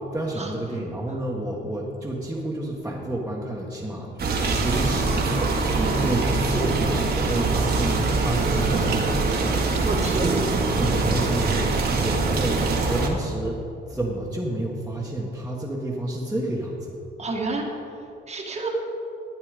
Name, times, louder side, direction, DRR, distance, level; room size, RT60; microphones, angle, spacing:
voice 1, 0.1-5.6 6.0-9.4 10.2-10.4 10.7-13.6 13.9-16.9, right 1 dB, 5° right, -5 dB, 1.6 m, -30 dB
sound 1, 4.2-13.1, right 3 dB, 55° right, 1.7 m, -23 dB
voice 2, 5.8-6.2 9.8-10.4 17.2-17.6 18.3-18.7, right 3 dB, 35° right, -1 dB, 1.7 m, -29 dB
12.5 x 9.0 x 5.2 m, 2.8 s
cardioid pair, 90°, 20 cm